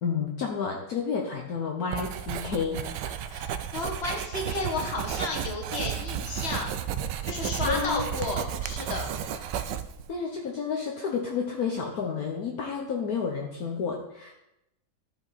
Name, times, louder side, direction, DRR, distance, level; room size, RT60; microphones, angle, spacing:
voice 1, 0.0-2.8 7.6-8.1 10.1-14.3, left 6 dB, 60° left, 1 dB, 1.3 m, -30 dB
Writing, 1.9-10.1, right 9 dB, 80° right, 1.2 m, -33 dB
voice 2, 3.3-6.7 7.2-9.1, left 3 dB, 40° left, 1 dB, 1.6 m, -32 dB
13.5 x 5.1 x 4.1 m, 0.88 s
omnidirectional pair, 1.9 m